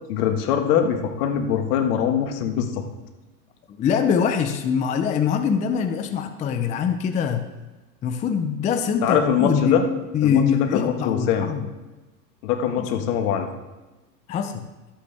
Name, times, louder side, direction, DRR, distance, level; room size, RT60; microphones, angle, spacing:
voice 1, 0.1-2.8 9.0-9.9 10.2-11.5 12.4-13.5, left 8 dB, 65° left, 5 dB, 1.7 m, -22 dB
voice 2, 3.7-7.5 8.0-9.8 10.1-11.7 12.8-12.9 14.3-14.7, left 7 dB, 15° left, 7 dB, 0.4 m, -23 dB
13.0 x 8.3 x 3.4 m, 1.1 s
hypercardioid pair, 110°, 50 cm